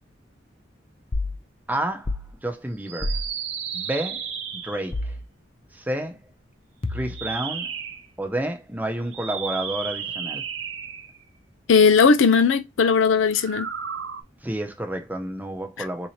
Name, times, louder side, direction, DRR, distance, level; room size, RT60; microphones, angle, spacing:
sound 1, 1.1-1.4 2.1-2.3 3.0-3.3 4.9-5.2 6.8-7.4, left 2 dB, 30° left, 0.4 m, -28 dB
voice 1, 1.7-2.1 2.4-3.2 3.7-4.2 4.6-5.1 5.7-6.2 6.9-7.7 8.2-10.4 14.4-16.1, right 1 dB, 10° right, 0.6 m, -30 dB
sound 2, 2.8-5.0 7.0-8.1 9.1-11.2 13.3-14.2, right 7 dB, 75° right, 0.6 m, -33 dB
voice 2, 11.7-13.7 15.8-15.9, left 5 dB, 80° left, 0.5 m, -18 dB
3.8 x 2.8 x 2.9 m
head